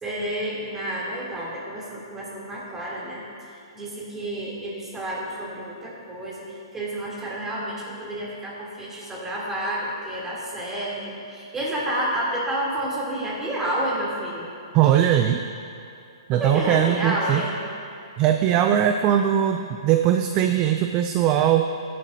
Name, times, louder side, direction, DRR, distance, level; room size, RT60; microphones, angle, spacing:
voice 1, 0.0-3.2 3.5-14.4 16.3-17.6, right 1 dB, 15° right, -5 dB, 3.1 m, -30 dB
voice 2, 14.7-15.4 16.3-17.4 18.2-21.7, right 10 dB, 30° right, 6 dB, 0.5 m, -20 dB
18.5 x 11.0 x 2.8 m, 2.6 s
hypercardioid pair, 140°, 3 cm